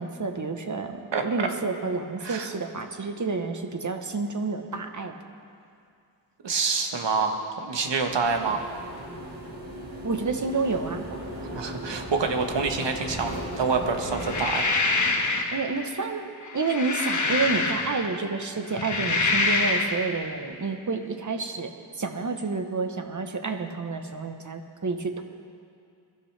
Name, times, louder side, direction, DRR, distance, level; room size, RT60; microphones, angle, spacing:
voice 1, 0.0-5.1 10.0-11.0 15.5-16.3 16.5-21.7 22.0-25.2, right 4 dB, 40° right, 6 dB, 1.1 m, -29 dB
voice 2, 1.1-1.5 2.2-2.5 6.4-8.6 11.5-14.7, right 4 dB, 70° right, 5 dB, 1.3 m, -27 dB
sound 1, 7.9-14.5, right 1 dB, 85° right, 2.0 m, -37 dB
sound 2, 14.1-15.6 16.4-18.2 18.7-20.0, left 3 dB, 40° left, 1.2 m, -25 dB
21.5 x 12.0 x 3.4 m, 2.4 s
wide cardioid pair, 75°, 44 cm